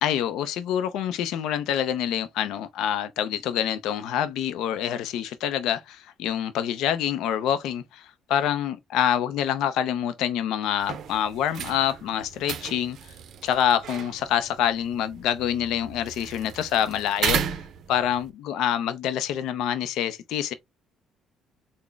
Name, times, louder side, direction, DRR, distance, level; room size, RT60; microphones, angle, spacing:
voice 1, 0.0-13.0 13.4-17.4 17.9-20.5, left 10 dB, 75° left, 0.4 m, -26 dB
sound 1, 10.8-18.3, right 8 dB, 65° right, 0.5 m, -34 dB
3.8 x 2.0 x 3.2 m
supercardioid pair, 75°, 0 cm